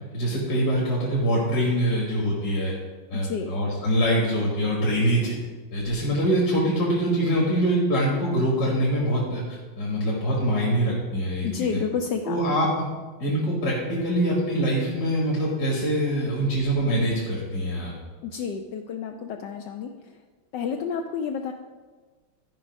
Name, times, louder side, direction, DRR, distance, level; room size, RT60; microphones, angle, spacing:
voice 1, 0.1-2.7 3.1-5.4 5.7-11.8 12.2-12.7 13.2-17.9, equal, 55° left, -4 dB, 2.1 m, -24 dB
voice 2, 3.1-3.5 11.4-12.6 18.2-20.1 20.5-21.5, left 6 dB, 75° left, 5 dB, 1.1 m, -30 dB
12.5 x 5.2 x 5.2 m, 1.4 s
omnidirectional pair, 2.1 m